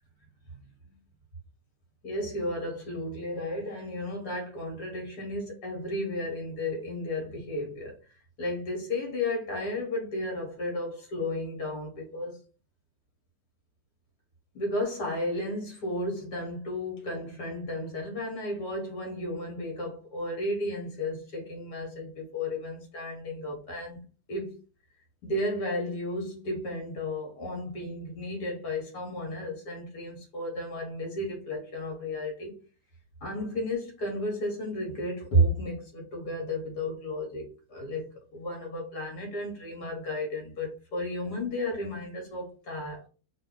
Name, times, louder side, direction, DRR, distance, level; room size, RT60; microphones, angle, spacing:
voice 1, 2.0-8.0 8.4-12.4 14.5-24.0 24.3-24.6 25.2-32.5 33.2-43.1, left 1 dB, 70° left, 2.0 m, -33 dB
3.7 x 2.3 x 3.7 m
omnidirectional pair, 1.8 m